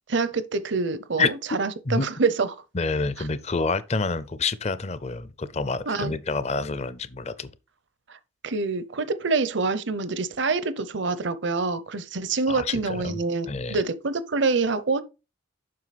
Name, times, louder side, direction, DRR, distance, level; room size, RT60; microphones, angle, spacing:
voice 1, 0.1-2.6 5.9-6.1 8.1-8.2 8.4-15.0, right 4 dB, 55° right, 0.7 m, -26 dB
voice 2, 2.7-7.5 12.5-13.2 13.5-13.8, left 4 dB, 30° left, 0.5 m, -28 dB
7.6 x 5.6 x 4.1 m
head